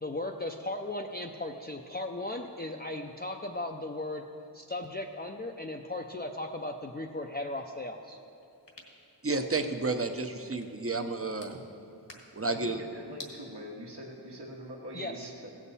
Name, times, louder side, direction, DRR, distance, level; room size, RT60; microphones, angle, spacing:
voice 1, 0.0-4.3 4.5-8.2 14.9-15.3, left 2 dB, 25° left, 2 dB, 0.5 m, -37 dB
sound 1, 8.2-13.3, left 2 dB, 75° left, 1.5 m, -54 dB
voice 2, 9.2-11.6 12.3-12.8, right 3 dB, 35° right, 7 dB, 0.7 m, -31 dB
voice 3, 12.5-15.5, equal, 70° right, -2 dB, 1.3 m, -43 dB
16.0 x 7.2 x 4.1 m, 2.9 s
wide cardioid pair, 45°, 42 cm